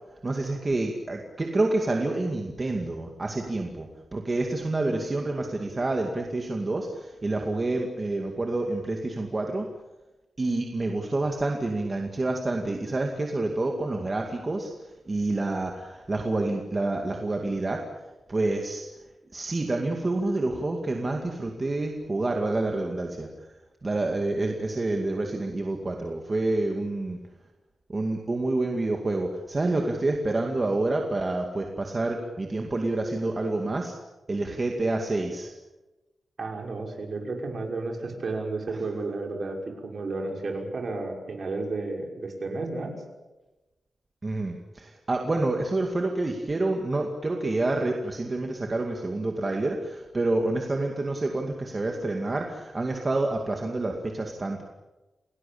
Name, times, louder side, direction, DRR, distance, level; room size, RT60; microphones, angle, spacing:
voice 1, 0.2-9.7 10.4-14.7 15.1-17.8 18.3-18.8 19.3-23.3 23.8-27.2 27.9-33.9 34.3-35.5 44.2-54.6, right 2 dB, 25° right, 2 dB, 2.3 m, -28 dB
voice 2, 36.4-42.9, right 3 dB, 45° right, 2 dB, 5.9 m, -32 dB
29.0 x 19.0 x 8.7 m, 1.1 s
wide cardioid pair, 175°, 0 cm